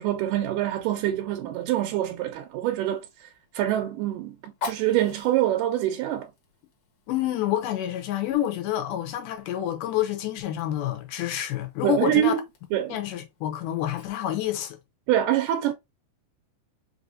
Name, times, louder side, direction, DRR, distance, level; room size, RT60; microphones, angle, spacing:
voice 1, 0.0-3.3 3.5-6.3 11.8-12.4 12.7-13.0 15.1-15.7, right 12 dB, 85° right, 2.2 m, -25 dB
Fire, 1.5-14.7, left 4 dB, 55° left, 1.7 m, -46 dB
voice 2, 7.1-12.3 12.9-14.8, left 12 dB, 85° left, 2.5 m, -28 dB
5.4 x 2.8 x 2.5 m
omnidirectional pair, 3.7 m